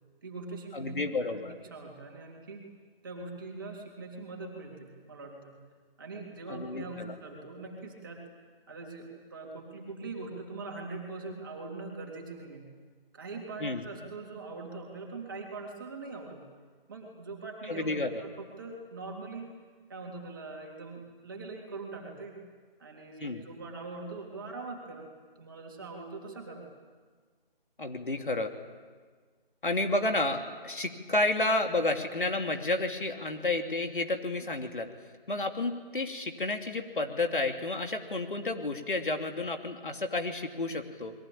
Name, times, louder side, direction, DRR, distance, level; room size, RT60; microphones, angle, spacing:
voice 1, 0.2-1.0 1.7-2.6 3.0-5.6 6.0-8.2 8.7-12.7 13.1-16.5 16.9-17.9 18.2-19.5 19.9-22.4 22.8-25.1 25.4-26.7, right 3 dB, 20° right, 0 dB, 3.5 m, -42 dB
voice 2, 0.7-1.5 6.5-7.1 13.6-13.8 17.7-18.2 23.2-23.4 27.8-28.5 29.6-34.9 35.3-41.1, left 2 dB, 60° left, 4 dB, 2.9 m, -31 dB
29.5 x 22.5 x 8.9 m, 1.5 s
figure-of-eight pair, 175°, 29 cm